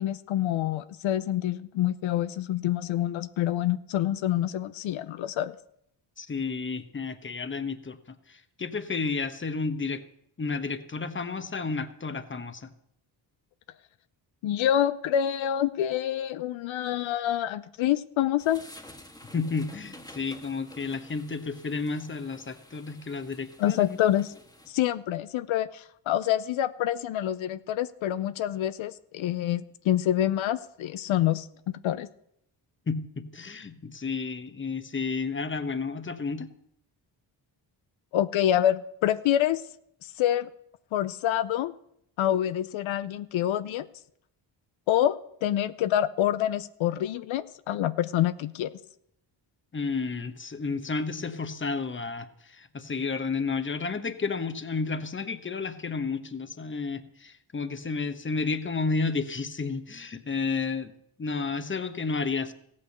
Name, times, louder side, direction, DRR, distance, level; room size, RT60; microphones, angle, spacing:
voice 1, 0.0-5.5 14.4-18.6 23.6-24.3 24.7-31.5 31.8-32.1 38.1-39.6 40.0-40.5 40.9-41.7 42.2-43.9 44.9-48.7, left 11 dB, 85° left, 13 dB, 0.6 m, -27 dB
voice 2, 6.2-8.0 8.3-10.0 10.4-12.7 19.3-24.0 32.9-36.5 49.7-60.9 61.2-62.5, left 4 dB, 25° left, 10 dB, 1.1 m, -31 dB
sound 1, 18.4-24.7, left 1 dB, 10° left, 1.7 m, -50 dB
15.0 x 8.7 x 6.6 m, 0.73 s
cardioid pair, 85°, 46 cm